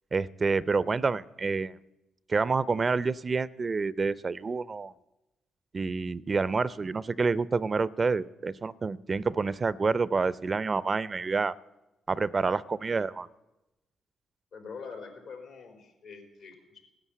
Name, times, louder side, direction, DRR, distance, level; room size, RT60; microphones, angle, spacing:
voice 1, 0.1-1.8 2.3-4.9 5.7-11.6 12.1-13.3, right 4 dB, 40° right, 19 dB, 0.5 m, -28 dB
voice 2, 14.5-16.8, left 5 dB, 80° left, 3 dB, 4.2 m, -44 dB
17.0 x 9.9 x 8.3 m, 1.0 s
supercardioid pair, 55°, 0 cm